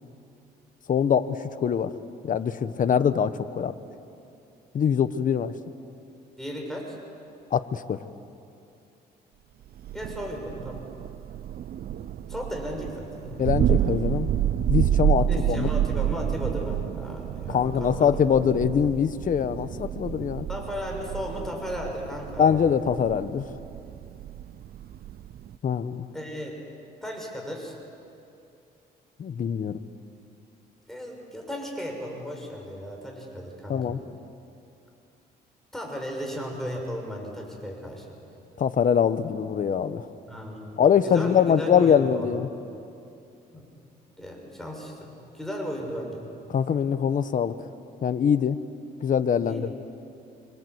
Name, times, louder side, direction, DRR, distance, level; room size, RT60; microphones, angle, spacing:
voice 1, 0.9-1.9 2.2-3.7 4.7-5.5 7.5-8.0 13.4-14.3 14.7-15.7 17.5-20.5 22.4-23.5 25.6-26.0 29.2-29.8 33.7-34.0 38.6-40.1 40.8-42.5 46.5-47.5 48.0-48.6 49.0-49.8, left 7 dB, 50° left, 11 dB, 1.2 m, -23 dB
voice 2, 6.4-7.0 9.9-10.9 12.3-13.5 15.3-18.1 20.5-22.7 26.1-26.5 27.0-27.8 30.9-34.0 35.7-38.2 40.3-40.8 41.0-42.3 43.5-43.6 44.2-46.2 49.4-49.8, equal, ahead, 0 dB, 6.4 m, -35 dB
Thunder, 9.8-25.6, right 11 dB, 60° right, 0.7 m, -29 dB
26.5 x 26.0 x 8.2 m, 2.7 s
cardioid pair, 95°, 18 cm